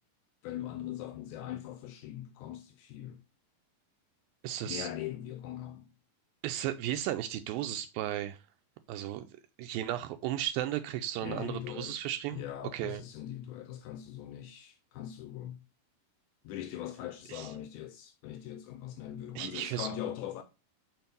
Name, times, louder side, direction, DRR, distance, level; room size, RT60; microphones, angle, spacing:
voice 1, 0.4-3.2 4.6-5.9 11.2-11.9 12.3-15.6 16.4-20.4, left 11 dB, 80° left, 1.7 m, -41 dB
voice 2, 4.4-4.9 6.4-8.4 8.9-9.3 9.6-12.5 12.7-13.0 17.3-17.5 19.4-19.9, right 12 dB, 85° right, 2.3 m, -35 dB
6.1 x 4.5 x 5.2 m
omnidirectional pair, 4.1 m